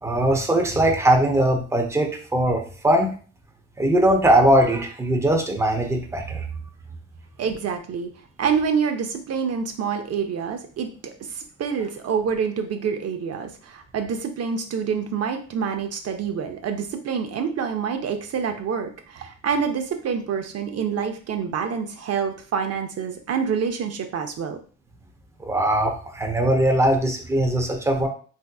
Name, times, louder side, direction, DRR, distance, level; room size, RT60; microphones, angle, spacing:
voice 1, 0.0-3.2 3.8-6.5 25.4-28.1, right 1 dB, 10° right, 2 dB, 0.6 m, -20 dB
voice 2, 7.4-8.1 8.4-10.9 11.3-24.6, right 6 dB, 55° right, 6 dB, 0.6 m, -27 dB
3.3 x 2.8 x 2.3 m, 0.41 s
cardioid pair, 90°, 30 cm